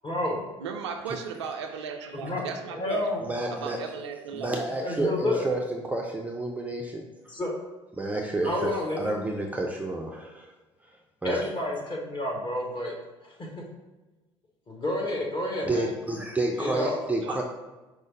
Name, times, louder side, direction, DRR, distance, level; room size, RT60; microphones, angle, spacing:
voice 1, 0.0-0.5 2.1-2.4 2.7-3.3 4.8-5.4 7.3-7.5 8.4-9.1 11.2-12.9 13.2-13.6 14.7-15.9 16.6-17.0, left 1 dB, 30° left, -1 dB, 1.1 m, -30 dB
voice 2, 0.6-3.0 3.5-4.7 17.2-17.4, right 6 dB, 75° right, 4 dB, 0.4 m, -36 dB
voice 3, 3.2-3.8 4.3-7.0 8.0-8.7 9.0-10.5 11.2-11.4 15.6-17.4, right 2 dB, 10° right, 0 dB, 0.4 m, -30 dB
4.9 x 2.0 x 3.8 m, 1.1 s
figure-of-eight pair, 55°, 15 cm